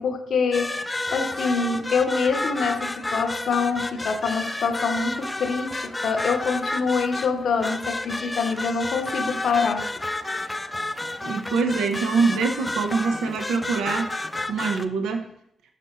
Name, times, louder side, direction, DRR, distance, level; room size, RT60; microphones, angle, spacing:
voice 1, 0.0-9.9, left 5 dB, 70° left, 7 dB, 0.6 m, -25 dB
sound 1, 0.5-14.9, left 2 dB, 20° left, 0.4 m, -31 dB
voice 2, 11.2-14.2 14.5-15.2, right 4 dB, 85° right, 6 dB, 0.6 m, -24 dB
6.6 x 4.8 x 2.9 m, 0.72 s
supercardioid pair, 55°, 0 cm